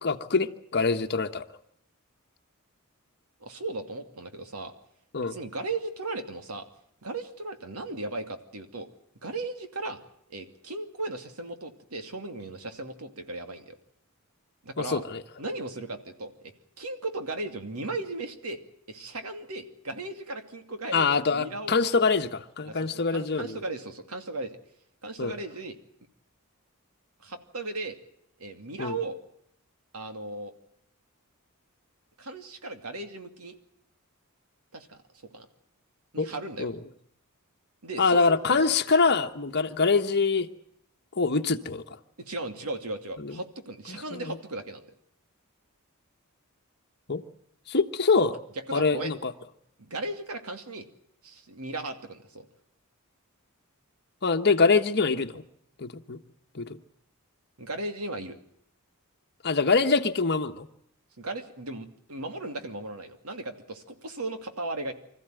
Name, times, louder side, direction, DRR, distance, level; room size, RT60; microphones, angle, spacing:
voice 1, 0.0-1.4 5.1-5.4 14.8-15.2 20.9-23.6 25.2-25.3 28.8-29.0 36.2-36.3 36.6-36.7 38.0-40.5 41.2-41.8 43.2-43.4 43.9-44.3 47.1-47.2 47.7-48.4 48.7-49.3 54.2-55.4 55.8-56.2 56.5-56.8 59.4-60.7, left 4 dB, 50° left, 1.3 m, -24 dB
voice 2, 3.4-4.7 5.2-6.7 7.0-8.9 9.2-10.0 10.3-13.8 14.6-15.0 15.4-18.6 18.9-21.8 22.6-24.6 25.0-25.8 27.2-28.0 28.4-29.2 29.9-30.5 32.2-33.6 34.7-35.0 35.3-35.5 36.1-36.7 37.8-38.7 42.2-44.8 48.7-49.1 49.8-50.9 51.2-52.4 57.6-58.4 61.2-64.9, right 2 dB, 80° right, 2.6 m, -36 dB
25.5 x 14.5 x 9.2 m
head